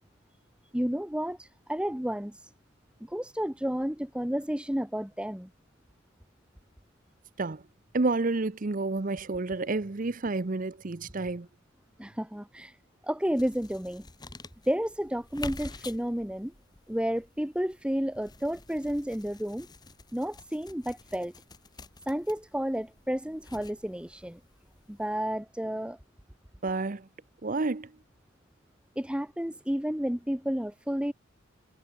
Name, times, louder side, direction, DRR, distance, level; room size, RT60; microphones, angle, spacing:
voice 1, 0.7-2.5 3.1-5.5 12.0-12.8 13.0-14.0 14.7-16.5 16.9-19.7 20.1-21.3 22.0-24.4 24.9-26.0 29.0-31.1, equal, 5° right, 1.0 m, -31 dB
voice 2, 7.9-11.5 26.6-27.1 27.4-27.9, right 3 dB, 40° right, 0.7 m, -30 dB
sound 1, 13.4-25.1, left 3 dB, 20° left, 1.4 m, -48 dB
head